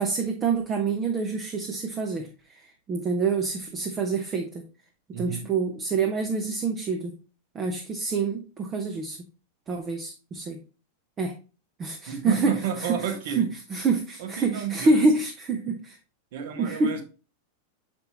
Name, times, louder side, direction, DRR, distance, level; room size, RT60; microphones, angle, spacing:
voice 1, 0.0-2.6 2.9-4.6 5.2-7.2 7.5-9.2 9.7-10.6 11.2-11.3 11.8-12.5 12.8-13.0 13.4-13.5 13.7-15.9 16.6-17.0, right 4 dB, 25° right, 0.9 m, -26 dB
voice 2, 5.1-5.5 12.1-13.4 14.2-15.0 16.3-17.0, right 8 dB, 55° right, 1.4 m, -31 dB
6.9 x 5.2 x 3.0 m
figure-of-eight pair, 90°, 0 cm